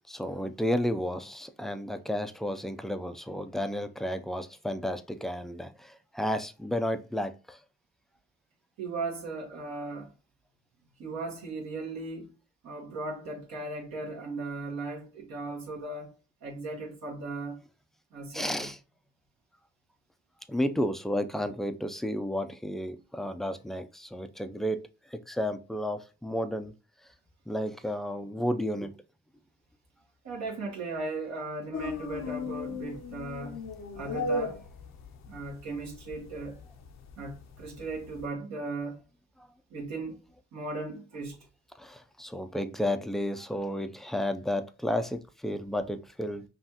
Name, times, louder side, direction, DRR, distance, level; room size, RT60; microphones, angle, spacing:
voice 1, 0.1-7.6 18.3-18.8 20.5-24.8 25.1-26.7 27.5-28.9 41.8-46.4, left 1 dB, ahead, 0.4 m, -32 dB
voice 2, 8.8-10.1 11.0-12.3 12.6-16.1 16.4-17.6 18.1-18.7 30.2-33.6 33.9-34.6 35.3-36.6 37.2-39.0 39.7-40.2 40.5-41.4, right 3 dB, 65° right, 1.4 m, -37 dB
sound 1, 31.7-38.3, left 3 dB, 60° left, 0.6 m, -37 dB
5.5 x 2.4 x 2.8 m
cardioid pair, 90°, 30 cm